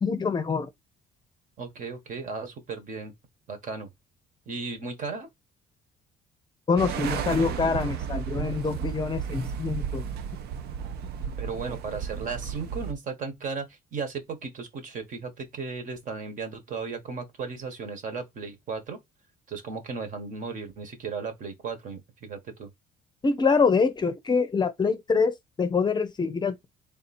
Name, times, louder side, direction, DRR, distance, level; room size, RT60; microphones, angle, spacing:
voice 1, 0.0-0.7 6.7-10.0 23.2-26.7, left 5 dB, 25° left, 0.6 m, -25 dB
voice 2, 1.6-3.1 3.5-3.9 4.5-5.3 11.4-19.0 19.5-22.7, right 4 dB, 50° right, 1.4 m, -35 dB
sound 1, 6.8-12.9, right 8 dB, 75° right, 0.6 m, -33 dB
3.7 x 2.6 x 4.2 m
cardioid pair, 110°, 17 cm